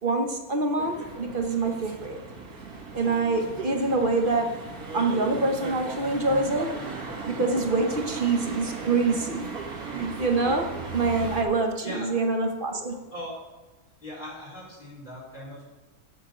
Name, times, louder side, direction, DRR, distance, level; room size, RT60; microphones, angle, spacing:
voice 1, 0.0-2.2 2.9-4.6 4.9-6.8 7.2-9.5 9.9-13.0, right 3 dB, 40° right, 3 dB, 1.1 m, -26 dB
sound 1, 0.8-11.4, right 4 dB, 75° right, 2.2 m, -37 dB
voice 2, 11.8-12.2 13.1-13.4 14.0-15.6, equal, 30° left, -6 dB, 4.2 m, -39 dB
8.5 x 6.8 x 6.2 m, 1.2 s
omnidirectional pair, 1.6 m